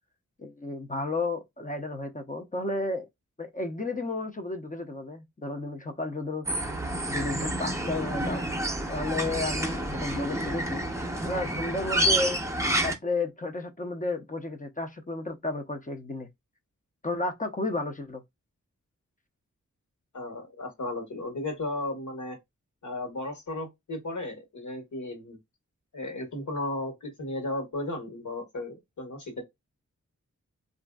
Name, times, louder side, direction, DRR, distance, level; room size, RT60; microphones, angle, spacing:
voice 1, 0.4-3.1 3.4-6.5 7.0-8.5 8.9-10.9 11.2-12.4 12.8-16.3 17.0-18.2, left 2 dB, 25° left, 0.6 m, -32 dB
sound 1, 6.5-13.0, right 1 dB, 10° right, 0.7 m, -29 dB
voice 2, 20.1-22.4 22.8-25.4 25.9-29.4, left 2 dB, 65° left, 1.3 m, -35 dB
2.9 x 2.6 x 2.2 m
cardioid pair, 55°, 31 cm